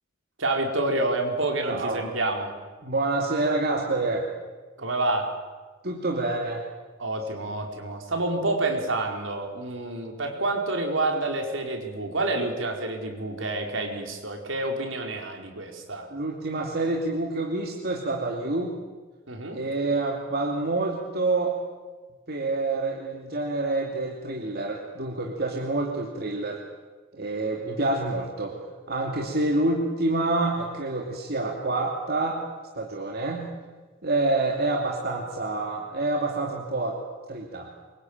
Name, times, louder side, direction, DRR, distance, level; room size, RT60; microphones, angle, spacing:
voice 1, 0.4-2.5 4.8-5.4 7.0-16.1 19.3-19.6, right 2 dB, 70° right, 3 dB, 4.7 m, -28 dB
voice 2, 1.7-2.0 2.8-4.3 5.8-6.6 16.1-18.8 19.5-21.6 22.3-26.6 27.1-28.6 28.9-32.4 32.7-33.5 34.0-37.0 37.3-37.7, right 2 dB, 50° right, 0 dB, 2.8 m, -27 dB
26.5 x 23.5 x 9.0 m, 1.3 s
head